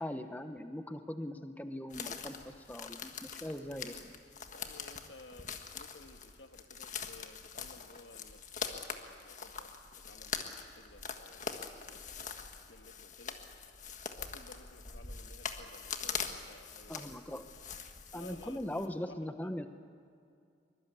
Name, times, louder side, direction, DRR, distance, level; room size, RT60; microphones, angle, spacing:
voice 1, 0.0-4.1 16.9-17.4 18.1-19.7, left 1 dB, 10° left, 8 dB, 0.9 m, -40 dB
sound 1, 1.9-18.9, left 6 dB, 45° left, 1.5 m, -43 dB
voice 2, 4.5-9.7 10.1-10.5 10.8-13.4 14.2-17.3 18.1-19.5, left 2 dB, 85° left, 6 dB, 1.8 m, -56 dB
23.5 x 22.5 x 8.4 m, 2.4 s
head